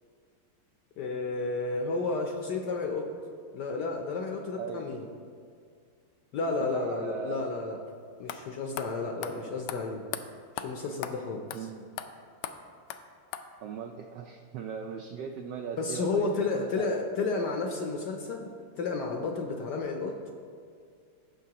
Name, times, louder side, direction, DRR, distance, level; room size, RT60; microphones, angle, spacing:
voice 1, 1.0-3.1 3.5-5.1 6.3-7.8 8.2-10.1 10.5-11.7 15.8-20.3, left 3 dB, 70° left, 2 dB, 1.0 m, -32 dB
voice 2, 4.6-4.9 6.6-7.4 11.5-11.8 13.6-16.9, right 6 dB, 80° right, 4 dB, 1.0 m, -38 dB
sound 1, 7.9-8.0 8.3-8.4 8.8-8.9 9.2-9.3 9.7-9.8 10.1-10.2 10.6-10.7 11.0-11.1 11.5-11.6 12.0-12.1 12.4-12.5 12.9-13.0 13.3-13.4, left 10 dB, 90° left, 1.5 m, -36 dB
16.0 x 6.8 x 2.9 m, 2.2 s
omnidirectional pair, 2.4 m